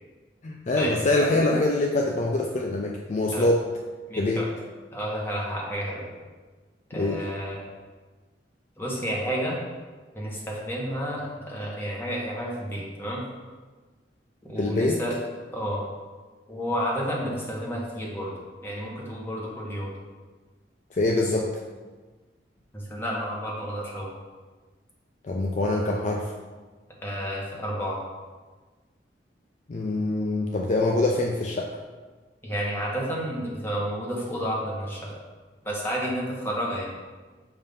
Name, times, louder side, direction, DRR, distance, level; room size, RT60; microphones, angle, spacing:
voice 1, 0.4-3.7 4.2-4.5 6.9-7.2 14.6-15.0 20.9-21.5 25.2-26.3 29.7-31.7, left 2 dB, 40° left, 0 dB, 0.4 m, -24 dB
voice 2, 4.1-4.5 4.9-6.0 6.9-7.7 8.8-9.6 10.1-13.2 14.5-15.2 15.5-15.8 16.5-18.3 18.6-19.9 22.7-24.1 27.0-28.0 32.4-35.1 35.6-36.8, equal, 10° left, -4 dB, 1.2 m, -31 dB
7.0 x 2.7 x 5.2 m, 1.4 s
head